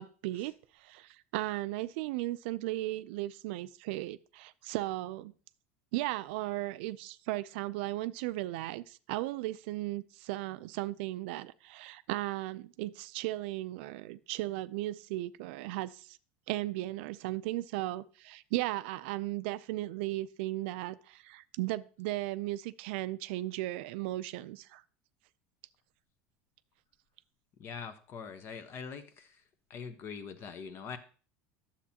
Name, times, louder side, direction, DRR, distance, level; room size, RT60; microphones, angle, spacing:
voice 1, 0.0-5.3 5.9-16.2 16.5-24.8, right 17 dB, 75° right, 0.4 m, -36 dB
voice 2, 27.6-29.4 29.7-31.0, left 6 dB, 40° left, 0.9 m, -43 dB
10.0 x 7.3 x 2.8 m
supercardioid pair, 130°, 6 cm